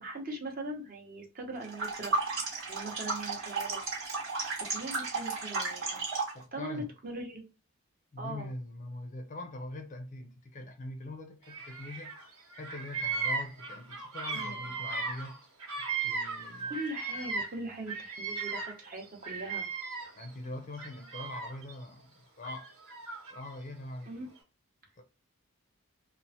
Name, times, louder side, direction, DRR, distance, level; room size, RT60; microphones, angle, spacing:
voice 1, 0.0-2.1 2.7-3.8 4.7-6.0 6.5-7.4 8.2-8.5 14.3-14.7 16.7-19.7 24.1-24.3, right 2 dB, 40° right, 0.7 m, -40 dB
sound 1, 1.6-6.4, right 3 dB, 60° right, 1.0 m, -34 dB
voice 2, 6.3-6.9 8.1-15.4 16.0-16.7 20.2-22.7 23.3-24.1 25.0-25.1, left 2 dB, 35° left, 0.4 m, -43 dB
Bird vocalization bird call bird song, 11.5-12.2 12.5-17.6 17.9-20.3 20.7-21.7 22.4-23.5, right 4 dB, 85° right, 1.1 m, -36 dB
3.0 x 2.1 x 2.7 m
head